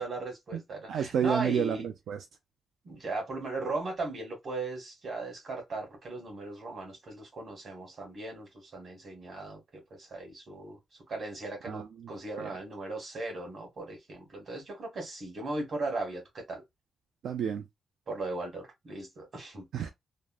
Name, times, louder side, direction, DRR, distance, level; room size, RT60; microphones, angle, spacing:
voice 1, 0.0-1.8 2.8-10.8 11.1-16.6 18.1-19.6, right 2 dB, 45° right, 1.7 m, -37 dB
voice 2, 0.9-2.2 11.6-12.1 12.4-12.5 17.2-17.7 19.7-19.9, right 8 dB, 85° right, 0.4 m, -30 dB
3.5 x 2.1 x 2.4 m
wide cardioid pair, 160°, 0 cm